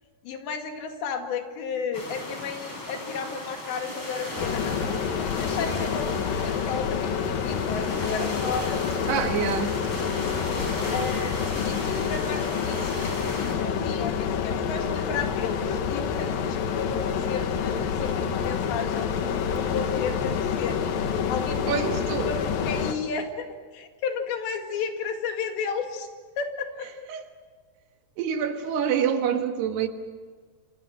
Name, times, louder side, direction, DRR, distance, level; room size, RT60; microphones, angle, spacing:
voice 1, 0.2-4.8 5.2-9.2 10.9-13.1 13.4-19.1 19.5-20.9 21.3-21.9 22.3-26.1 26.4-26.9, left 5 dB, 85° left, 4.4 m, -33 dB
sound 1, 1.9-13.5, left 1 dB, 30° left, 6.1 m, -36 dB
sound 2, 4.4-22.9, left 7 dB, 65° left, 2.9 m, -28 dB
voice 2, 9.1-9.8 21.7-22.3 27.1-27.3 28.2-29.9, right 8 dB, 75° right, 3.5 m, -26 dB
28.5 x 26.5 x 6.4 m
omnidirectional pair, 4.9 m